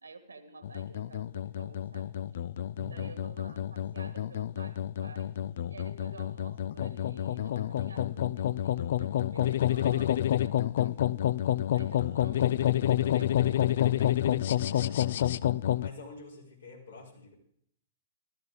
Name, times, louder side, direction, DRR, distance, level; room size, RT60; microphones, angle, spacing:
voice 1, 0.0-2.2 2.9-11.2 11.7-15.3, right 3 dB, 70° right, 10 dB, 1.7 m, -51 dB
sound 1, 0.6-15.9, left 12 dB, 50° left, 0.4 m, -29 dB
voice 2, 2.7-3.1 12.0-12.2 15.7-17.3, left 3 dB, 70° left, -1 dB, 4.9 m, -47 dB
14.0 x 13.5 x 5.0 m, 0.69 s
figure-of-eight pair, 110°, 0 cm